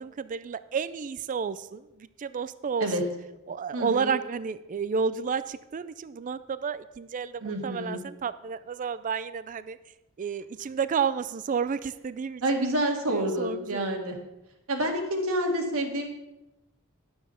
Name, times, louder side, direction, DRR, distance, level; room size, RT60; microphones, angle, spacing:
voice 1, 0.0-2.9 3.5-9.8 10.2-12.4 13.1-13.9, right 6 dB, 40° right, 15 dB, 0.4 m, -31 dB
voice 2, 3.7-4.2 7.4-8.0 12.4-14.2 14.7-16.1, right 1 dB, 75° right, 2 dB, 1.9 m, -28 dB
11.5 x 7.1 x 5.7 m, 0.97 s
head